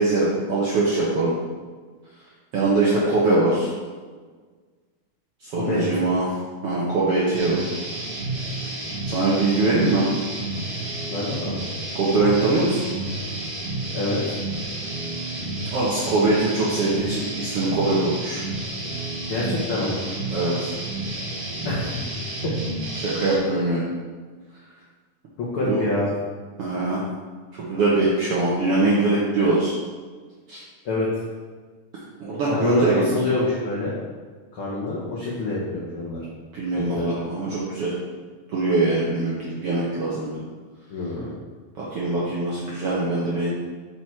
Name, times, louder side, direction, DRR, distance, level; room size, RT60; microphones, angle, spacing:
voice 1, 0.0-1.3 2.5-3.7 5.4-6.3 6.6-7.6 8.4-8.5 9.1-10.1 11.9-12.8 15.7-18.4 20.3-20.7 23.0-23.8 25.6-25.8 26.6-27.0 27.5-29.7 30.5-30.6 32.2-33.0 36.5-37.9 38.5-40.4 41.8-43.5, right 2 dB, 70° right, -6 dB, 1.4 m, -22 dB
voice 2, 5.6-6.0 11.1-11.6 13.9-14.3 19.3-20.0 21.6-22.0 22.4-22.5 25.4-26.1 30.8-31.2 32.5-33.9 34.5-36.2 36.9-37.1 40.9-41.3, left 2 dB, 75° left, -6 dB, 1.2 m, -26 dB
sound 1, 7.3-23.4, right 2 dB, 50° right, 2.1 m, -31 dB
6.1 x 4.4 x 4.5 m, 1.5 s
omnidirectional pair, 3.9 m